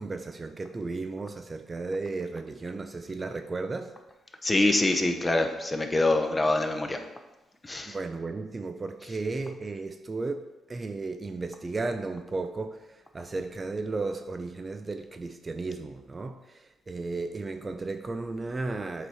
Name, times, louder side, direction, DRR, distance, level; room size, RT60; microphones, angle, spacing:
voice 1, 0.0-3.9 7.9-10.4 10.7-12.8 13.1-16.4 16.9-19.1, right 3 dB, 30° right, 7 dB, 0.4 m, -34 dB
voice 2, 4.4-7.1 7.6-8.0, left 2 dB, 20° left, 5 dB, 0.7 m, -25 dB
7.8 x 3.0 x 4.7 m, 1.0 s
cardioid pair, 90°, 0 cm